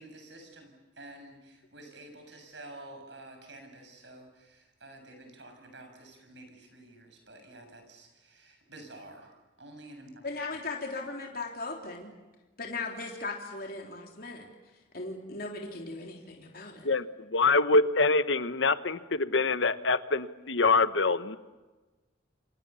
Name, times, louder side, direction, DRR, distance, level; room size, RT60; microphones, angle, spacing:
voice 1, 0.0-9.3 9.6-10.2, right 2 dB, 70° right, 5 dB, 7.5 m, -50 dB
voice 2, 10.2-12.1 12.6-14.5 14.9-16.9, left 3 dB, 55° left, 1 dB, 3.5 m, -38 dB
voice 3, 16.8-21.4, left 3 dB, 80° left, 12 dB, 1.2 m, -25 dB
29.0 x 26.5 x 7.1 m, 1.2 s
head